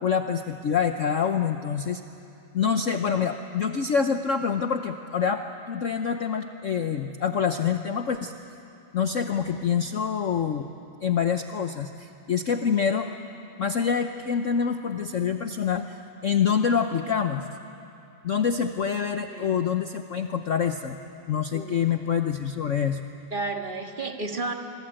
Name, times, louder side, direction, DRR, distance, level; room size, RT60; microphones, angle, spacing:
voice 1, 0.0-2.0 2.5-8.3 8.9-10.7 11.0-13.1 13.6-16.0 16.2-17.4 18.2-21.0 21.3-23.0, left 7 dB, 55° left, 7 dB, 0.9 m, -26 dB
voice 2, 21.5-21.9 23.3-24.5, right 3 dB, 25° right, 3 dB, 1.8 m, -32 dB
26.5 x 23.5 x 8.9 m, 2.8 s
omnidirectional pair, 2.1 m